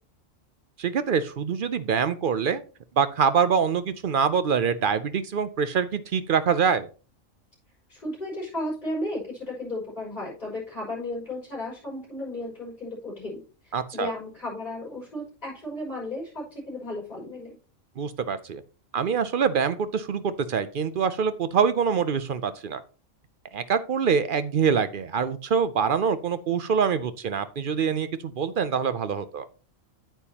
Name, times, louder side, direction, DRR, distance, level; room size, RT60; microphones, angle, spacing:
voice 1, 0.8-2.6 3.0-6.9 13.7-14.1 18.0-18.6 18.9-22.8 23.5-29.5, right 6 dB, 55° right, 12 dB, 0.6 m, -25 dB
voice 2, 7.9-17.6, left 1 dB, 35° left, -5 dB, 5.6 m, -34 dB
9.0 x 8.7 x 2.8 m, 0.36 s
omnidirectional pair, 1.3 m